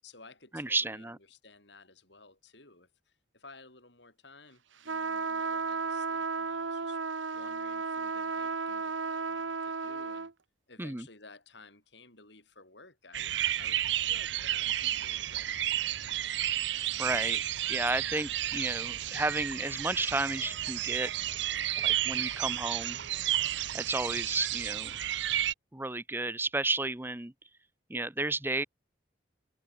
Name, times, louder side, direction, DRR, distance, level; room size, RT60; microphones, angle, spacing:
voice 1, 0.0-7.0 7.3-10.3 10.7-16.1, left 3 dB, 65° left, 7.2 m, -55 dB
voice 2, 0.5-1.2 10.8-11.1 16.7-17.4 17.7-21.1 21.8-23.0 23.7-25.0 25.7-27.3 27.9-28.6, right 2 dB, 10° right, 0.8 m, -32 dB
sound 1, 4.9-10.3, right 4 dB, 85° right, 1.3 m, -34 dB
sound 2, 13.1-25.5, right 12 dB, 70° right, 0.7 m, -32 dB
head